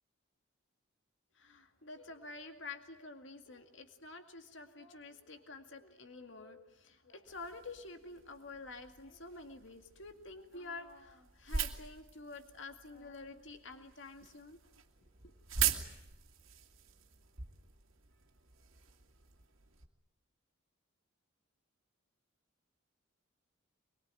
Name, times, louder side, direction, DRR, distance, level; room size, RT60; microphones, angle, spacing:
voice 1, 1.4-14.6 15.2-15.3, left 3 dB, 65° left, 6 dB, 2.2 m, -49 dB
sound 1, 7.2-19.9, right 8 dB, 75° right, 2.3 m, -42 dB
25.0 x 22.5 x 9.1 m, 0.91 s
head